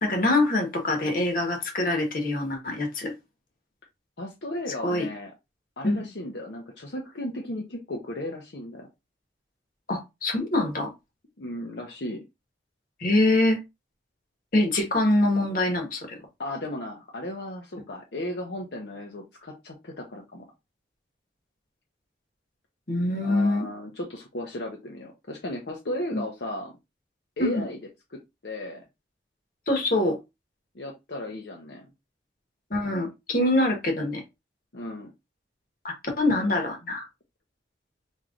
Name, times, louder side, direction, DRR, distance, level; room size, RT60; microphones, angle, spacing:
voice 1, 0.0-3.1 4.8-5.1 5.8-6.1 9.9-10.9 13.0-13.6 14.5-16.2 22.9-23.7 26.1-26.2 27.4-27.6 29.7-30.2 32.7-34.2 35.8-37.0, left 1 dB, 50° left, 1.3 m, -24 dB
voice 2, 4.2-5.3 5.8-8.9 11.4-12.2 16.4-20.5 23.2-26.7 27.4-27.8 28.1-28.8 30.7-31.9 34.7-35.1, left 1 dB, 70° left, 0.8 m, -35 dB
5.4 x 3.1 x 2.5 m
head